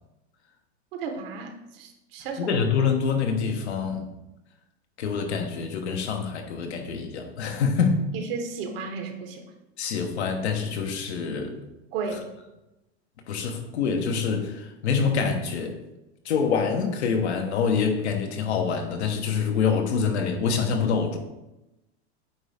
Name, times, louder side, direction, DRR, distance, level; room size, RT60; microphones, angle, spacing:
voice 1, 0.9-2.4 8.1-9.4 11.9-12.2, right 5 dB, 65° right, 4 dB, 1.3 m, -33 dB
voice 2, 2.4-4.1 5.0-8.0 9.8-11.6 12.1-12.2 13.3-15.7 16.2-21.2, left 6 dB, 85° left, 3 dB, 1.2 m, -26 dB
8.6 x 3.7 x 3.5 m, 0.95 s
supercardioid pair, 120°, 32 cm